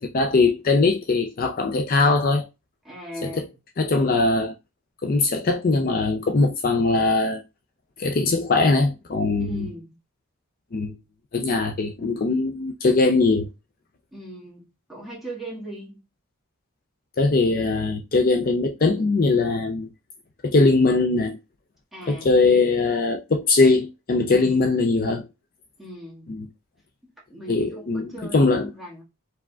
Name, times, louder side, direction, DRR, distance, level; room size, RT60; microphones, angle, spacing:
voice 1, 0.0-2.5 3.2-3.4 3.8-4.5 5.0-7.4 8.0-9.7 10.7-10.9 11.3-13.5 17.2-19.9 20.4-21.4 22.1-25.3 26.3-26.5 27.5-28.7, left 3 dB, 40° left, 0.4 m, -21 dB
voice 2, 2.8-3.5 9.4-9.9 14.1-16.0 21.9-22.3 24.3-24.7 25.8-26.4 27.3-29.0, right 1 dB, ahead, 1.7 m, -38 dB
4.8 x 3.3 x 2.3 m
head